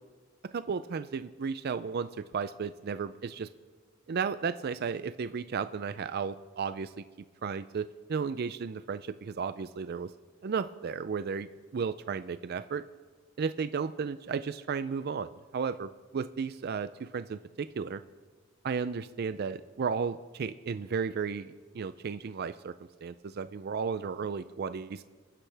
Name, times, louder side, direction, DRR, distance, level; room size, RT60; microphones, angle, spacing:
voice 1, 0.5-2.1 2.3-3.5 4.1-7.0 7.4-10.1 10.4-12.8 13.4-18.0 18.6-22.7 23.0-25.0, right 5 dB, 50° right, 13 dB, 0.4 m, -34 dB
28.5 x 10.0 x 3.4 m, 1.4 s
head